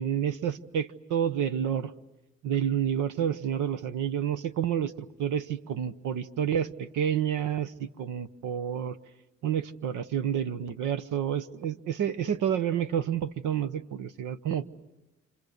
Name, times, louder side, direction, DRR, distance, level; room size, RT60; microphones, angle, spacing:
voice 1, 0.0-1.9 2.4-9.0 9.4-14.7, right 9 dB, 85° right, 13 dB, 1.1 m, -29 dB
30.0 x 26.0 x 6.7 m, 1.0 s
cardioid pair, 90°, 30 cm